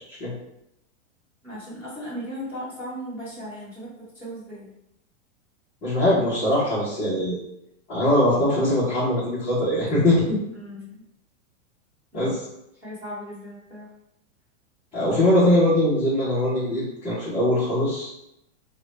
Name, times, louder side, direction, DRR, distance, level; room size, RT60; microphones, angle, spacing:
voice 1, 1.4-4.7 10.5-11.0 12.1-12.4 12.8-13.9, equal, 5° right, -10 dB, 1.0 m, -37 dB
voice 2, 5.8-7.4 7.9-10.4 12.1-12.4 14.9-18.1, left 1 dB, 15° left, -11 dB, 0.5 m, -21 dB
3.7 x 2.1 x 3.1 m, 0.84 s
supercardioid pair, 170°, 38 cm